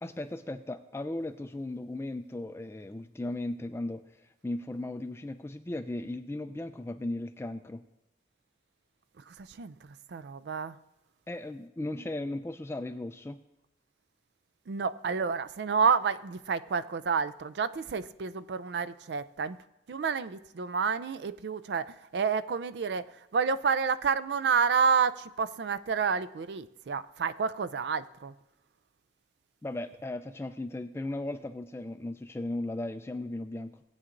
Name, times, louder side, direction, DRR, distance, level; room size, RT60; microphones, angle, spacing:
voice 1, 0.0-7.8 11.3-13.4 29.6-33.8, left 2 dB, 15° left, 0.3 m, -36 dB
voice 2, 9.2-10.8 14.7-28.3, right 5 dB, 70° right, 0.4 m, -30 dB
19.0 x 8.5 x 2.6 m
head